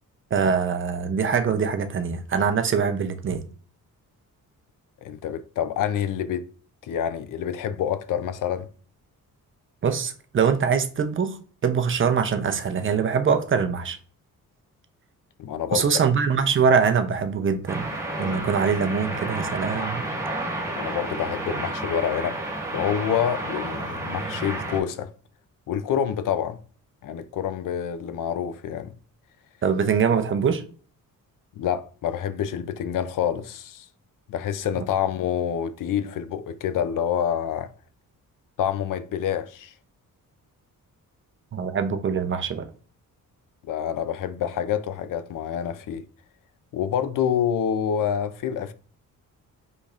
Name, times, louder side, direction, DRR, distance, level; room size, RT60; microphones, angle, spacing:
voice 1, 0.3-3.4 9.8-11.4 11.6-14.0 15.7-17.9 18.2-20.1 29.6-30.6 41.5-42.6, right 6 dB, 35° right, 0.6 m, -23 dB
voice 2, 5.0-6.4 6.8-8.7 15.4-15.9 20.8-22.4 22.7-25.1 25.7-26.6 27.0-28.9 31.6-33.9 34.3-37.7 38.6-39.7 43.6-46.0 46.7-48.7, left 9 dB, 65° left, 0.5 m, -27 dB
sound 1, 17.7-24.8, right 1 dB, 10° right, 1.5 m, -31 dB
5.2 x 4.1 x 2.4 m
cardioid pair, 130°, 34 cm